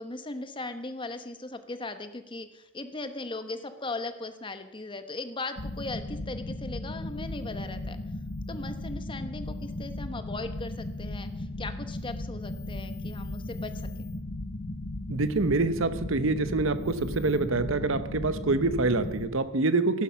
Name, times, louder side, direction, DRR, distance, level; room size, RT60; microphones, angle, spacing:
voice 1, 0.0-8.0 8.5-13.9, left 2 dB, 20° left, 9 dB, 0.9 m, -38 dB
sound 1, 5.6-19.3, left 1 dB, 50° left, 1.1 m, -36 dB
voice 2, 15.1-20.0, right 3 dB, 60° right, 12 dB, 0.9 m, -26 dB
14.5 x 12.0 x 5.7 m, 0.99 s
head